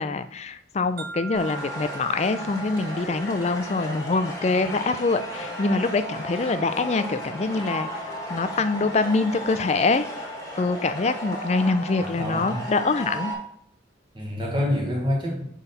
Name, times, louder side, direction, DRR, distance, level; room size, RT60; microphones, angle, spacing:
voice 1, 0.0-7.9 8.3-10.1 10.6-13.3, left 3 dB, 35° left, 11 dB, 0.4 m, -24 dB
sound 1, 1.0-5.0, right 3 dB, 55° right, 0.9 m, -42 dB
sound 2, 1.3-13.3, equal, 15° left, 1.3 m, -35 dB
voice 2, 12.0-12.6 14.1-15.4, left 1 dB, 25° right, -1 dB, 1.1 m, -27 dB
6.1 x 4.1 x 5.3 m, 0.67 s
head